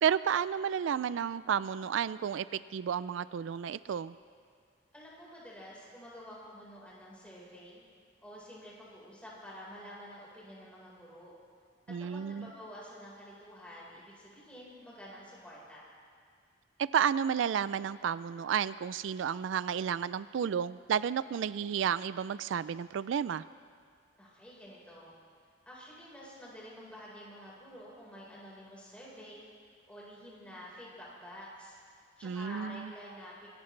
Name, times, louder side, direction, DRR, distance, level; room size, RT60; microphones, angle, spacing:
voice 1, 0.0-4.1 11.9-12.5 16.8-23.4 32.2-32.9, right 8 dB, 85° right, 17 dB, 0.3 m, -31 dB
voice 2, 4.9-7.8 8.2-11.3 11.9-15.9 24.2-25.1 25.7-29.5 29.9-31.8 32.2-33.5, equal, 5° left, -6 dB, 4.4 m, -49 dB
25.0 x 17.0 x 3.3 m, 2.1 s
head